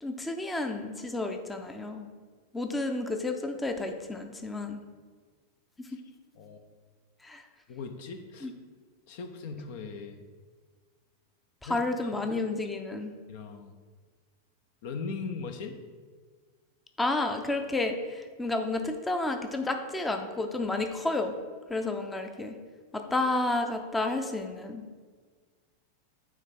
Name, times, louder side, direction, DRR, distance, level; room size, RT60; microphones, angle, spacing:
voice 1, 0.0-2.1 2.5-4.8 7.2-7.4 8.4-8.5 11.6-13.1 17.0-21.4 21.7-22.6 22.9-24.8, left 2 dB, 10° left, 5 dB, 0.6 m, -31 dB
voice 2, 7.7-8.5 9.1-10.2 11.6-12.1 13.3-13.7 14.8-15.8, left 4 dB, 50° left, 7 dB, 0.6 m, -39 dB
9.1 x 3.6 x 4.2 m, 1.5 s
figure-of-eight pair, 90°, 0 cm